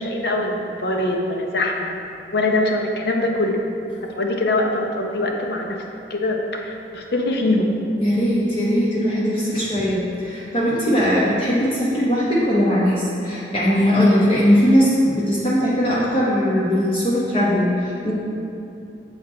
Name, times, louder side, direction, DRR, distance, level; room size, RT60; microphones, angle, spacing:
voice 1, 0.0-2.0 2.3-3.6 4.0-5.8 6.1-7.7, left 2 dB, 65° left, 1 dB, 0.7 m, -23 dB
voice 2, 8.0-18.1, equal, 35° left, -8 dB, 1.0 m, -19 dB
7.2 x 4.0 x 4.4 m, 2.7 s
head